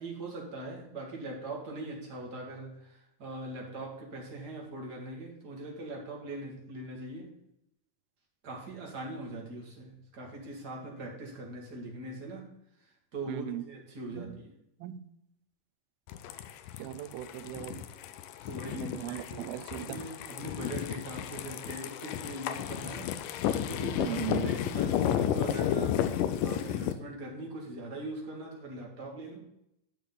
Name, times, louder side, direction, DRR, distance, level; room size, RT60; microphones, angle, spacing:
voice 1, 0.0-7.3 8.4-12.5 12.8-14.5 18.4-19.6 19.8-26.0 26.4-29.4, right 2 dB, 35° right, -2 dB, 2.0 m, -41 dB
voice 2, 13.3-13.6 14.1-14.4 14.8-15.0 16.8-17.8 18.7-20.0 24.0-24.6, right 15 dB, 80° right, 11 dB, 2.4 m, -38 dB
sound 1, 16.1-26.9, left 10 dB, 85° left, 2.0 m, -32 dB
11.5 x 6.8 x 4.0 m, 0.82 s
omnidirectional pair, 4.4 m